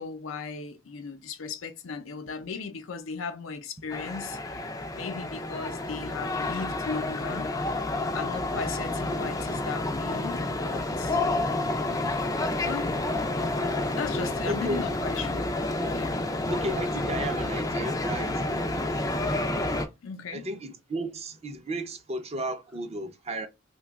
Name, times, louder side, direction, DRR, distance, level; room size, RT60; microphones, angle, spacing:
voice 1, 0.0-4.6 4.9-7.5 8.1-11.2 12.6-12.9 14.0-15.5 15.9-16.2 20.0-20.4, left 5 dB, 90° left, 0.5 m, -36 dB
sound 1, 3.9-19.9, left 2 dB, 20° left, 0.4 m, -29 dB
voice 2, 14.4-14.9 16.4-19.6 20.3-23.5, right 1 dB, 30° right, 0.5 m, -34 dB
2.9 x 2.2 x 3.4 m
head